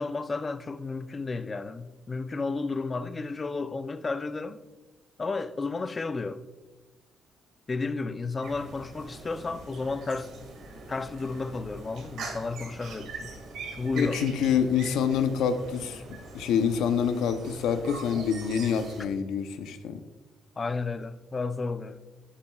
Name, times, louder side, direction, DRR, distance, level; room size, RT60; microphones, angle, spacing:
voice 1, 0.0-4.6 5.2-6.4 7.7-10.3 10.9-13.3 13.7-14.3 20.6-22.0, left 3 dB, 30° left, 0.5 m, -32 dB
sound 1, 8.4-19.0, right 3 dB, 80° right, 1.9 m, -42 dB
voice 2, 13.9-16.0 16.3-20.0, left 7 dB, 90° left, 0.7 m, -26 dB
9.6 x 8.5 x 2.3 m
cardioid pair, 90°, 0 cm